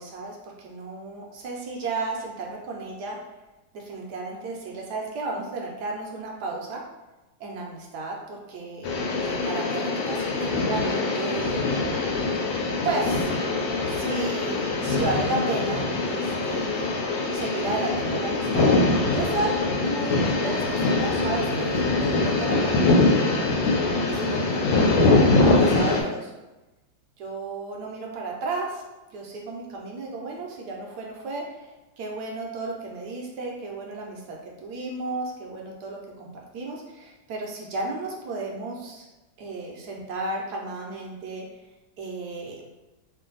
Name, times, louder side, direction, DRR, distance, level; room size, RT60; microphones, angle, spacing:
voice 1, 0.0-3.2 3.7-6.8 7.4-8.9 9.2-11.7 12.8-13.3 13.9-17.0 17.3-18.7 19.1-22.9 24.1-24.8 25.4-26.3 27.2-28.8 29.1-31.4 32.0-39.1 39.4-41.4 42.0-42.6, right 3 dB, 65° right, -1 dB, 1.1 m, -33 dB
sound 1, 8.8-26.0, left 3 dB, 90° left, 1.4 m, -23 dB
3.2 x 2.6 x 3.8 m, 1.1 s
omnidirectional pair, 2.1 m